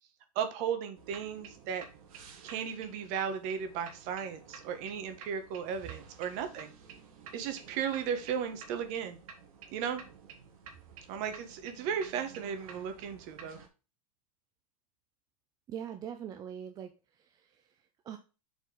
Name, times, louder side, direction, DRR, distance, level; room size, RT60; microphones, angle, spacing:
voice 1, 0.3-1.8 2.4-6.7 7.3-9.2 9.7-10.0 11.1-13.6, right 7 dB, 40° right, 8 dB, 1.5 m, -35 dB
sound 1, 1.0-13.7, right 6 dB, 70° right, 1.9 m, -52 dB
voice 2, 15.7-18.2, right 9 dB, 20° right, 7 dB, 0.5 m, -43 dB
7.4 x 4.2 x 4.0 m, 0.32 s
supercardioid pair, 155°, 18 cm